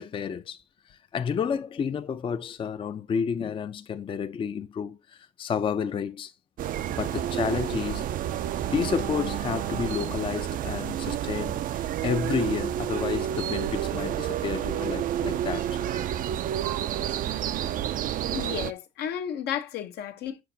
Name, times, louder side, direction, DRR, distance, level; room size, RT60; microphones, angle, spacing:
voice 1, 0.0-6.3 6.9-8.1 8.7-15.8, left 6 dB, 30° left, 0.5 m, -31 dB
sound 1, 6.6-18.7, right 11 dB, 55° right, 0.4 m, -30 dB
voice 2, 18.2-20.4, left 9 dB, 75° left, 0.9 m, -33 dB
7.7 x 6.0 x 2.7 m
cardioid pair, 110°, 17 cm